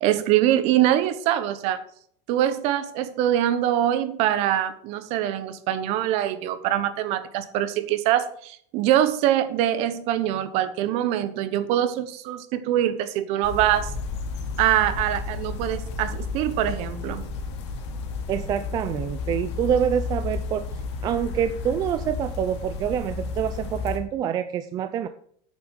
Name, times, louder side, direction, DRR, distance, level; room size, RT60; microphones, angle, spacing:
voice 1, 0.0-1.8 2.3-13.9 14.6-17.3, right 12 dB, 45° right, 12 dB, 1.1 m, -23 dB
sound 1, 13.4-24.0, left 4 dB, 85° left, 2.4 m, -32 dB
voice 2, 18.3-20.6 21.0-25.1, right 9 dB, 25° right, 11 dB, 0.4 m, -26 dB
8.9 x 6.9 x 6.4 m, 0.62 s
supercardioid pair, 160°, 14 cm